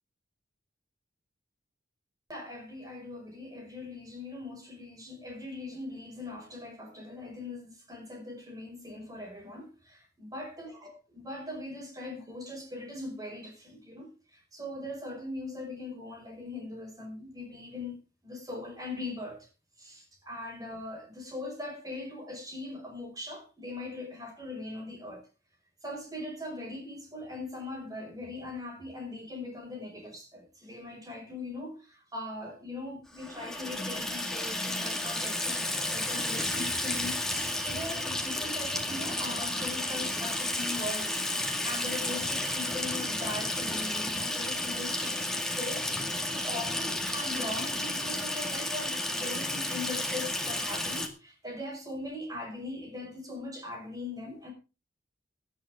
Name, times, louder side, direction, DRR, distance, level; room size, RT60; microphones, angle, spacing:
voice 1, 2.3-10.0 10.2-18.0 18.2-19.5 19.8-25.2 25.8-41.2 41.6-45.3 45.6-46.0 46.3-54.5, left 2 dB, 20° right, 5.4 m, -40 dB
Water tap faucet / Sink (filling or washing), 33.2-51.1, left 1 dB, 5° left, 1.9 m, -32 dB
17.5 x 11.0 x 3.6 m
head